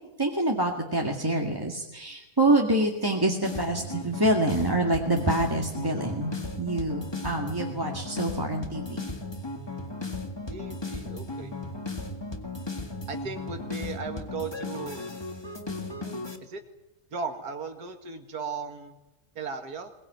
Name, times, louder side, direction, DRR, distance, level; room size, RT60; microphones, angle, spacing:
voice 1, 0.2-9.1, right 1 dB, 15° right, 0 dB, 2.0 m, -26 dB
sound 1, 3.4-16.4, left 2 dB, 15° left, 2.0 m, -36 dB
voice 2, 10.5-11.5 13.1-15.0 16.4-16.6 17.1-19.0 19.4-19.9, right 4 dB, 75° right, 5 dB, 2.5 m, -36 dB
22.0 x 21.0 x 9.3 m, 0.92 s
omnidirectional pair, 1.7 m